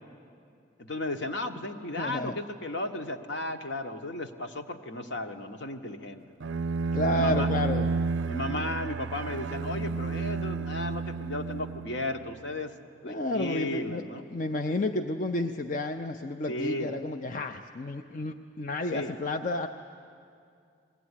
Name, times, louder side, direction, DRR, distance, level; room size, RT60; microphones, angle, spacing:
voice 1, 0.8-6.2 7.1-7.5 8.3-12.7 13.0-14.3 16.5-16.9 18.9-19.1, left 1 dB, 70° left, 5 dB, 1.3 m, -34 dB
voice 2, 2.0-2.3 6.9-7.9 13.0-14.0 14.3-19.7, left 2 dB, 45° left, 6 dB, 0.5 m, -31 dB
Bowed string instrument, 6.4-12.2, right 4 dB, 80° right, 0.4 m, -31 dB
21.0 x 16.5 x 9.9 m, 2.4 s
head